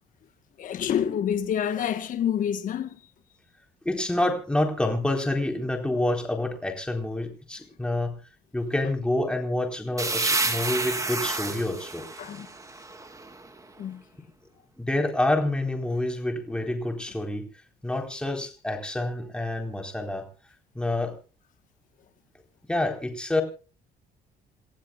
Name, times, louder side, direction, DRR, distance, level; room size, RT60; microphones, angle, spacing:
voice 1, 0.6-3.1 12.2-12.5 12.7-12.8 13.8-14.0, left 9 dB, 50° left, 1.3 m, -28 dB
voice 2, 3.8-8.2 8.5-12.1 14.8-17.4 17.8-20.3 20.7-21.1 22.7-23.4, left 1 dB, 5° left, 4.1 m, -27 dB
sound 1, 10.0-13.6, right 3 dB, 20° right, 2.9 m, -30 dB
29.5 x 15.0 x 2.4 m
cardioid pair, 110°, 17 cm